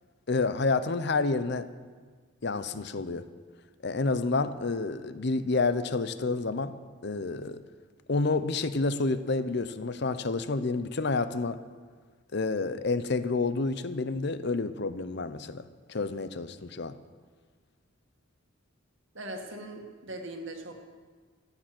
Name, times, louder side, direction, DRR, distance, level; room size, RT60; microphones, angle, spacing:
voice 1, 0.3-1.7 2.4-3.3 3.8-6.7 7.0-7.6 8.1-11.6 12.3-15.6 15.9-16.9, left 3 dB, 55° left, 13 dB, 0.6 m, -29 dB
voice 2, 19.1-20.9, right 1 dB, 65° right, 4 dB, 1.9 m, -40 dB
14.5 x 8.9 x 7.7 m, 1.5 s
head